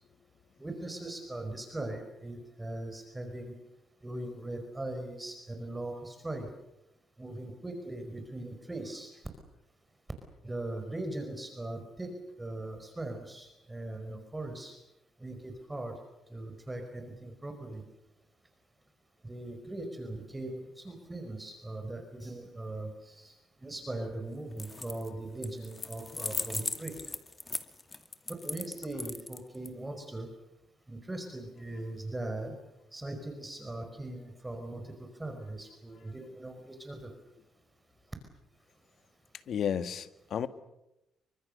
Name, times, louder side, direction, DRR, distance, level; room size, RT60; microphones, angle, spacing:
voice 1, 0.6-3.5 4.0-6.5 7.2-9.1 10.4-14.8 15.2-15.9 16.3-17.8 19.2-23.3 23.6-26.9 28.3-30.3 30.9-32.5 32.9-34.9 35.2-37.1, right 2 dB, 15° right, 6 dB, 5.1 m, -40 dB
sound 1, 24.5-25.1 25.4-29.7, left 3 dB, 25° left, 2.4 m, -38 dB
voice 2, 39.5-40.5, left 8 dB, 65° left, 11 dB, 1.7 m, -32 dB
29.0 x 25.0 x 6.7 m, 0.90 s
cardioid pair, 90°, 0 cm